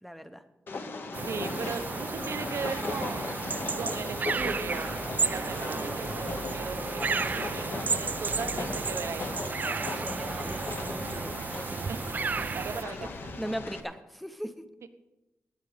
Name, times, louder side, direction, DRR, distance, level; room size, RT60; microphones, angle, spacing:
voice 1, 0.0-0.4 9.8-11.8 13.4-14.7, equal, ahead, 9 dB, 0.7 m, -39 dB
Train, 0.7-13.8, left 3 dB, 50° left, 1.0 m, -37 dB
sound 1, 1.1-12.8, right 5 dB, 40° right, 0.4 m, -33 dB
voice 2, 1.2-4.9 5.2-9.3 11.9-13.1 14.8-14.9, right 5 dB, 85° right, 10 dB, 0.9 m, -38 dB
sound 2, 4.4-13.6, left 1 dB, 25° left, 1.0 m, -48 dB
19.0 x 8.2 x 5.0 m, 1.0 s
wide cardioid pair, 175°, 5 cm